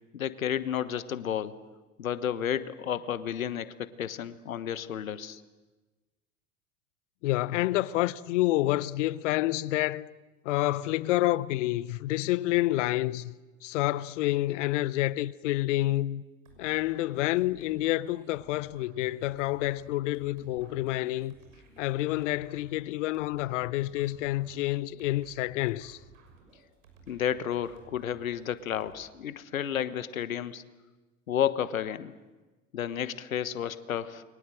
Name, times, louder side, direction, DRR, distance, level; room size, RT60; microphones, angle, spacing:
voice 1, 0.1-1.6 2.0-5.4 27.1-30.6 31.3-32.1 32.7-34.2, left 9 dB, 80° left, 1.3 m, -32 dB
voice 2, 7.2-10.1 10.4-13.3 13.6-16.2 16.6-21.4 21.8-26.0, left 16 dB, 60° left, 0.9 m, -28 dB
sound 1, 16.4-28.9, right 4 dB, 75° right, 6.5 m, -57 dB
29.5 x 23.0 x 7.8 m
figure-of-eight pair, 80°, 41 cm